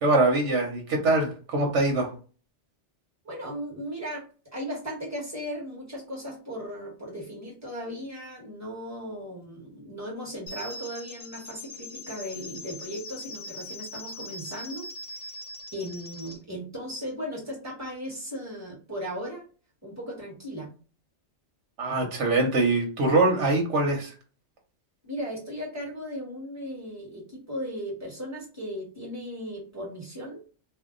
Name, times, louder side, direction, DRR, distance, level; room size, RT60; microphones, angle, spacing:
voice 1, 0.0-2.1 21.8-24.1, right 2 dB, 80° right, 2 dB, 1.2 m, -23 dB
voice 2, 3.2-4.2 4.5-15.3 15.7-19.5 19.8-20.7 25.0-30.4, equal, 15° right, -3 dB, 1.3 m, -37 dB
sound 1, 10.5-16.4, left 2 dB, 60° left, 0.7 m, -41 dB
2.8 x 2.1 x 3.8 m, 0.37 s
omnidirectional pair, 1.2 m